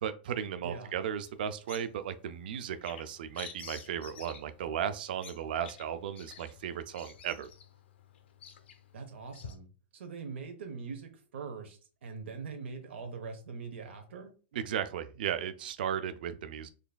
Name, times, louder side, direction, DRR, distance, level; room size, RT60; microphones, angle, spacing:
voice 1, 0.0-7.5 14.5-16.7, right 9 dB, 50° right, 10 dB, 0.3 m, -35 dB
voice 2, 0.6-1.0 8.9-14.3, right 5 dB, 80° right, 5 dB, 0.7 m, -42 dB
Bird vocalization bird call bird song, 1.2-9.5, left 7 dB, 70° left, 0.6 m, -51 dB
3.9 x 3.3 x 2.2 m, 0.36 s
supercardioid pair, 175°, 6 cm